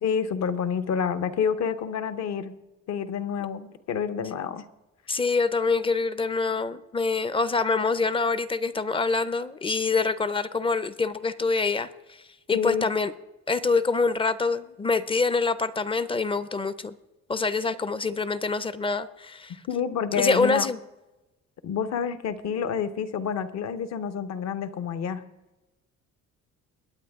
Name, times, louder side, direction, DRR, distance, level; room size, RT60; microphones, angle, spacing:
voice 1, 0.0-2.6 2.9-4.6 12.5-12.9 19.7-20.7 21.6-25.2, left 7 dB, 60° left, 1.0 m, -28 dB
voice 2, 5.1-12.2 12.5-13.1 13.5-16.9 17.3-19.6 20.1-20.8, left 4 dB, 20° left, 0.5 m, -25 dB
21.5 x 8.9 x 3.6 m
cardioid pair, 150°, 30 cm